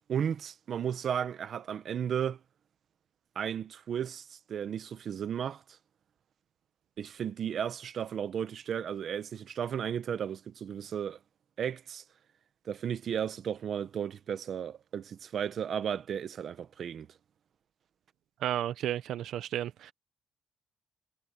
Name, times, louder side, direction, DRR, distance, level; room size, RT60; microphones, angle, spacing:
voice 1, 0.1-2.4 3.3-5.6 7.0-11.2 11.6-12.0 12.6-17.1, right 8 dB, 50° right, 1.0 m, -34 dB
voice 2, 18.4-19.9, right 11 dB, 75° right, 0.7 m, -33 dB
cardioid pair, 145°, 0 cm